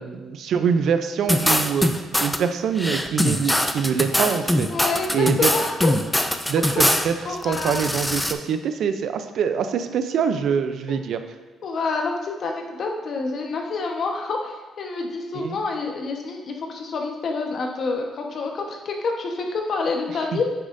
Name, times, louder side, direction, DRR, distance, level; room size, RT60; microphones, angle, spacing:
voice 1, 0.0-4.7 5.1-5.5 6.5-11.2 15.3-15.6 20.3-20.4, right 7 dB, 70° right, 9 dB, 0.6 m, -24 dB
sound 1, 1.3-2.4 2.8-7.1 7.4-8.3, left 1 dB, 5° left, 0.6 m, -22 dB
voice 2, 4.7-5.1 5.4-5.9 7.2-7.8 11.6-20.4, left 4 dB, 60° left, 2 dB, 1.2 m, -27 dB
9.2 x 6.8 x 2.7 m, 1.2 s
cardioid pair, 90°, 0 cm